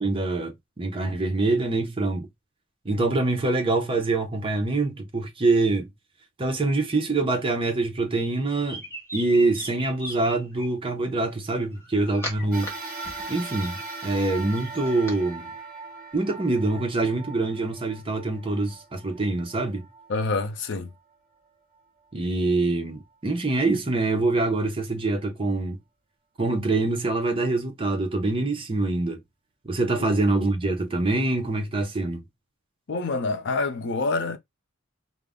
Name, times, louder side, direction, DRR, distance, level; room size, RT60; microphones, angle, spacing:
voice 1, 0.0-2.3 2.8-5.9 6.4-8.8 9.1-12.7 13.3-15.5 16.1-19.9 22.1-25.8 26.4-29.2 29.6-32.2, right 2 dB, 25° right, 0.6 m, -25 dB
sound 1, 8.4-10.7 11.5-12.7 13.0-15.2, equal, 15° left, 0.9 m, -38 dB
sound 2, 12.5-21.1 21.7-21.8 22.9-23.0, right 3 dB, 45° right, 1.2 m, -40 dB
voice 2, 20.1-20.9 30.0-30.1 32.9-34.4, left 3 dB, 60° left, 0.5 m, -27 dB
2.3 x 2.1 x 3.4 m
head